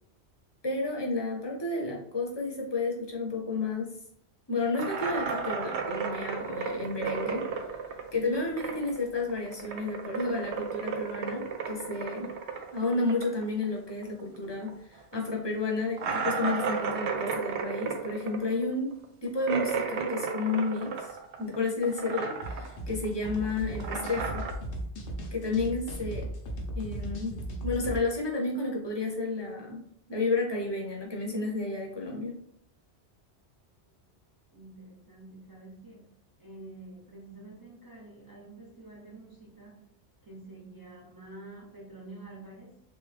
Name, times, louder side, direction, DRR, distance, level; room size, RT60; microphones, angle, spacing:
voice 1, 0.6-4.0 4.5-7.5 8.1-12.3 12.7-18.9 19.2-24.5 25.3-26.3 26.7-29.8 30.1-32.4, left 3 dB, 25° left, -1 dB, 0.7 m, -31 dB
sound 1, 4.7-9.0 9.3-14.4 14.6-14.7 15.1-15.2 16.0-21.6 21.8-22.8 23.0-24.5, right 5 dB, 85° right, 0.9 m, -33 dB
sound 2, 22.4-28.0, right 1 dB, 90° left, 1.0 m, -37 dB
voice 2, 34.5-36.1 36.4-39.9 40.2-42.8, right 2 dB, 25° right, -3 dB, 0.7 m, -48 dB
3.5 x 2.6 x 3.3 m, 0.69 s
omnidirectional pair, 1.1 m